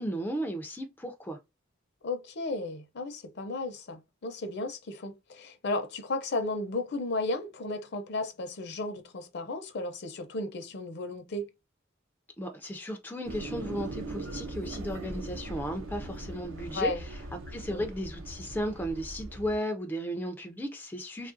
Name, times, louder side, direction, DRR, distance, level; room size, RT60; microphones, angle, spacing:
voice 1, 0.0-1.4 12.4-17.2 17.5-21.3, equal, 10° left, 0.3 m, -35 dB
voice 2, 2.0-11.5 16.7-17.0 17.7-17.9, left 2 dB, 55° left, 0.6 m, -34 dB
sound 1, 13.2-19.6, right 1 dB, 85° right, 0.8 m, -40 dB
3.2 x 2.3 x 2.5 m
head